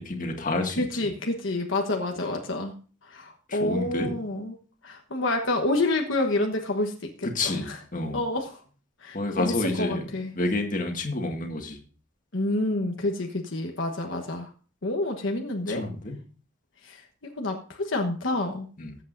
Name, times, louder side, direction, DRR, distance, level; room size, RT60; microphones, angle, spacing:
voice 1, 0.0-0.8 3.5-4.1 7.3-8.2 9.1-10.0 10.4-11.8 15.7-16.2 18.8-19.0, left 2 dB, 40° left, 3 dB, 1.9 m, -29 dB
voice 2, 0.8-2.7 3.0-4.5 4.8-7.8 8.1-8.6 9.0-10.3 12.3-14.5 14.8-15.9 16.8-18.7, left 2 dB, 70° left, 2 dB, 1.3 m, -28 dB
20.0 x 8.2 x 2.6 m, 0.40 s
head